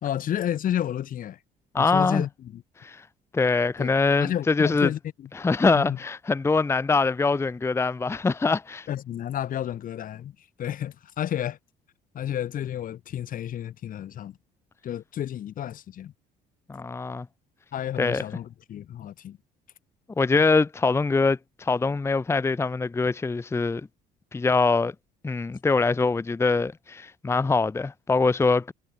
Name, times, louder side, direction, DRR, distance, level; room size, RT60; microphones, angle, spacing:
voice 1, 0.0-1.4 1.8-2.6 3.8-3.9 4.2-5.3 5.7-6.0 8.9-10.3 10.6-11.6 12.1-14.4 14.8-16.1 17.7-19.4 20.4-20.5, left 11 dB, 55° left, 1.5 m, -31 dB
voice 2, 1.7-2.3 2.8-3.1 3.3-4.9 5.4-8.9 16.7-17.3 18.0-18.2 20.2-23.9 24.3-24.9 25.2-28.7, left 4 dB, 15° left, 0.7 m, -23 dB
cardioid pair, 110°, 17 cm